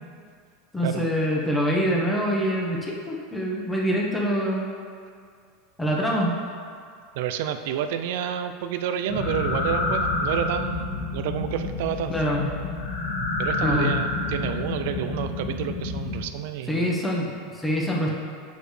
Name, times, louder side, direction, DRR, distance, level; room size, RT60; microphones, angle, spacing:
voice 1, 0.7-4.7 5.8-6.4 12.1-12.5 13.6-13.9 16.7-18.1, equal, 5° left, -3 dB, 1.1 m, -25 dB
voice 2, 7.1-12.1 13.4-16.9, right 9 dB, 70° right, 9 dB, 0.4 m, -29 dB
sound 1, 9.1-16.2, left 2 dB, 90° left, 1.4 m, -28 dB
7.9 x 5.0 x 3.3 m, 2.2 s
supercardioid pair, 125°, 0 cm